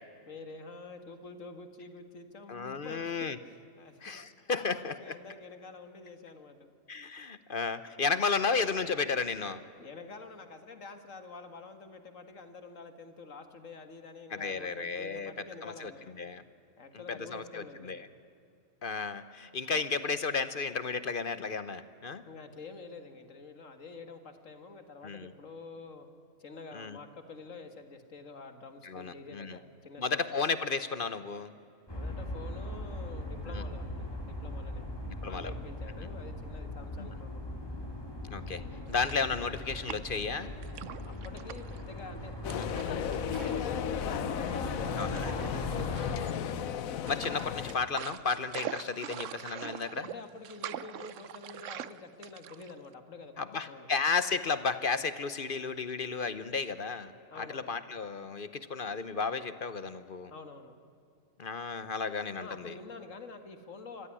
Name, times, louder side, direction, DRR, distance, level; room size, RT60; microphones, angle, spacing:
voice 1, 0.3-4.0 4.5-6.7 9.8-16.2 16.8-18.1 22.3-26.1 26.4-30.2 31.9-34.8 35.2-37.4 41.1-46.3 50.0-53.9 57.3-57.7 60.3-60.7 62.4-64.1, left 4 dB, 70° left, 8 dB, 2.1 m, -48 dB
voice 2, 2.5-3.4 4.0-5.1 6.9-9.6 14.3-15.3 15.6-15.9 16.2-16.4 17.2-18.0 18.8-22.2 25.0-25.3 26.7-27.0 28.8-29.6 30.0-31.5 33.5-33.6 35.2-35.5 37.0-37.1 38.3-38.6 38.9-40.5 42.5-42.7 45.0-45.3 47.0-50.1 53.4-60.3 61.4-62.7, left 4 dB, 45° left, 13 dB, 0.9 m, -33 dB
sound 1, 31.9-46.2, left 1 dB, 15° left, 2.9 m, -39 dB
sound 2, 38.9-40.3 40.6-41.8 42.5-43.7 44.0-44.1 45.0-45.5 46.0-46.6 47.1-52.9, right 10 dB, 70° right, 1.0 m, -43 dB
sound 3, 42.4-47.8, left 9 dB, 85° left, 1.2 m, -35 dB
25.5 x 15.5 x 9.8 m, 2.6 s
omnidirectional pair, 1.4 m